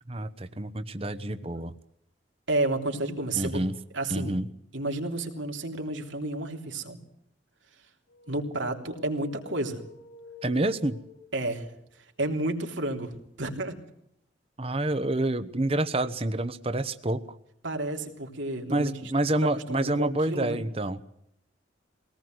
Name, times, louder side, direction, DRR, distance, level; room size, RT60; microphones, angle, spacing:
voice 1, 0.1-1.7 3.3-3.7 4.1-4.5 10.4-11.0 14.6-17.4 18.7-21.0, right 1 dB, 30° right, 12 dB, 1.0 m, -28 dB
voice 2, 2.5-3.6 3.9-4.4 4.7-7.0 8.3-9.8 11.3-11.7 12.2-13.8 17.6-19.1 19.5-20.6, right 2 dB, 90° right, 3 dB, 3.4 m, -31 dB
sound 1, 8.1-11.7, left 2 dB, 85° left, 4.7 m, -48 dB
23.0 x 18.5 x 7.9 m, 0.76 s
head